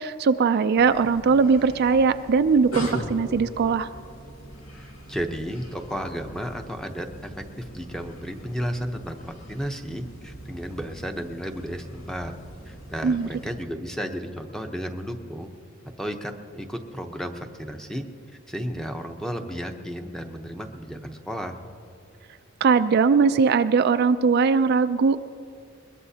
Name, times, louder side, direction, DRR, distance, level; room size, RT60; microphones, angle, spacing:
voice 1, 0.0-3.9 13.0-13.3 22.6-25.2, right 5 dB, 50° right, 10 dB, 0.3 m, -20 dB
sound 1, 0.8-13.6, equal, 85° left, 2.1 m, -40 dB
voice 2, 4.7-12.3 12.7-15.5 16.0-18.0 18.5-21.6, equal, 5° left, 5 dB, 0.8 m, -33 dB
21.5 x 21.5 x 2.8 m, 2.5 s
head